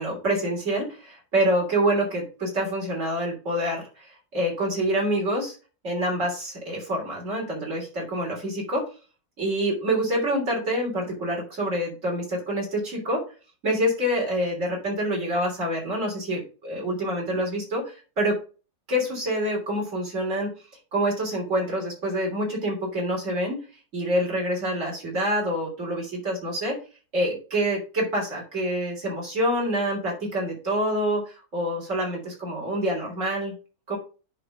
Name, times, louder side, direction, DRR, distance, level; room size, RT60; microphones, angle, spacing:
voice 1, 0.0-5.6 5.8-8.9 9.4-13.2 13.6-18.4 18.9-20.5 20.9-23.6 23.9-26.8 27.1-33.5 33.9-34.0, right 1 dB, 55° right, -2 dB, 3.7 m, -26 dB
10.5 x 3.5 x 5.3 m, 0.35 s
omnidirectional pair, 1.6 m